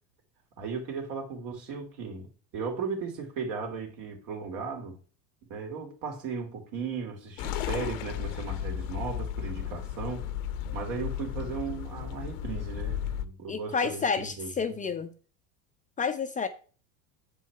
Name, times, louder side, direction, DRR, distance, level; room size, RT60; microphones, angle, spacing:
voice 1, 0.6-5.0 5.5-10.3 10.7-14.9, right 5 dB, 70° right, 2.6 m, -36 dB
sound 1, 7.4-13.2, left 10 dB, 70° left, 0.8 m, -34 dB
voice 2, 13.5-15.1 16.0-16.5, left 5 dB, 20° left, 0.5 m, -30 dB
7.6 x 4.7 x 4.6 m
supercardioid pair, 100°, 40 cm